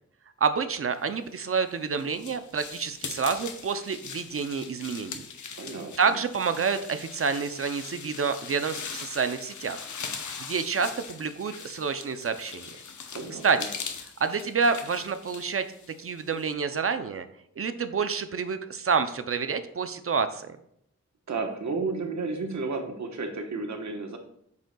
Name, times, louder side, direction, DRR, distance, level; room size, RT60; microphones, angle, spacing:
voice 1, 0.4-5.2 6.0-9.8 10.4-12.7 13.4-13.6 14.2-15.7 16.0-17.3 17.6-20.5, right 5 dB, 50° right, 10 dB, 0.5 m, -28 dB
sound 1, 1.4-16.5, left 6 dB, 85° left, 0.8 m, -41 dB
voice 2, 5.6-6.2 13.1-13.7 21.3-24.2, right 3 dB, 75° right, 4 dB, 1.1 m, -32 dB
8.3 x 6.5 x 2.3 m, 0.71 s
wide cardioid pair, 125°, 29 cm